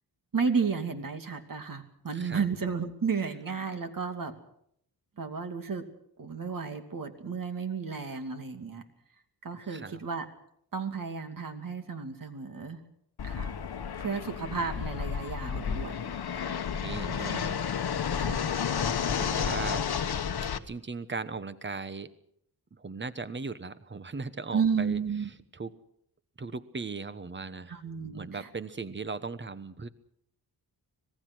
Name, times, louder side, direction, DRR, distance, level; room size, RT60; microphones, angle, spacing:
voice 1, 0.3-4.3 5.2-5.8 6.2-8.8 9.4-10.3 10.7-12.8 13.2-13.5 14.0-16.1 17.2-17.5 18.2-18.6 24.5-25.3 27.7-28.5, right 5 dB, 55° right, 6 dB, 2.7 m, -32 dB
voice 2, 2.1-2.5 9.7-10.0 16.3-17.6 19.2-19.9 20.7-22.1 22.7-25.0 25.5-25.7 26.4-27.8 28.1-29.9, right 4 dB, 30° right, 13 dB, 1.2 m, -38 dB
Fixed-wing aircraft airplane, 13.2-20.6, left 7 dB, 70° left, 1.2 m, -31 dB
25.5 x 18.5 x 6.3 m, 0.71 s
wide cardioid pair, 135°, 40 cm